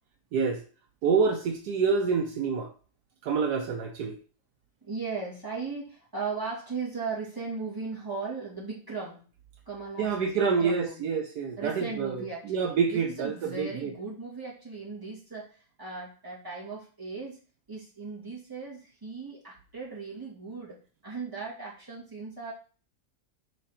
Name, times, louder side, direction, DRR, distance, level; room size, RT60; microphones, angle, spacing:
voice 1, 1.0-2.7 3.2-4.2 10.0-13.9, right 5 dB, 75° right, 4 dB, 1.3 m, -27 dB
voice 2, 4.8-9.2 9.7-11.2 11.6-17.4 17.7-22.5, right 4 dB, 10° right, -7 dB, 2.6 m, -37 dB
5.0 x 4.9 x 4.3 m, 0.39 s
omnidirectional pair, 1.8 m